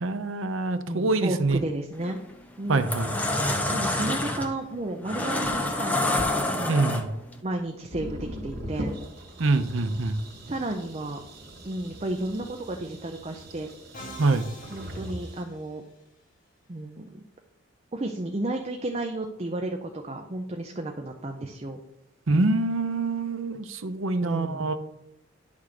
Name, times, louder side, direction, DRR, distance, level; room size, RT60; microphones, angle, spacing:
voice 1, 0.0-1.6 2.7-3.1 6.7-7.1 9.4-10.2 14.2-14.5 22.3-24.8, right 3 dB, 70° right, 10 dB, 0.7 m, -25 dB
voice 2, 0.9-2.2 2.6-3.0 3.7-6.2 6.6-7.0 7.4-8.9 10.4-11.2 11.6-13.7 14.7-15.8 16.7-17.2 17.9-21.8 24.2-24.8, right 1 dB, 30° right, 3 dB, 0.6 m, -33 dB
sound 1, 1.5-1.6 2.7-2.8 3.4-3.5 4.0-4.8 5.2-5.7 6.1-6.3 7.2-7.3 7.5-7.6 7.8-15.4, equal, 50° right, 2.2 m, -40 dB
sound 2, 1.9-2.2 2.7-7.3, left 1 dB, 5° left, 0.7 m, -27 dB
Musical instrument, 13.9-16.0, equal, 40° left, 1.6 m, -45 dB
10.5 x 3.6 x 6.5 m, 0.85 s
head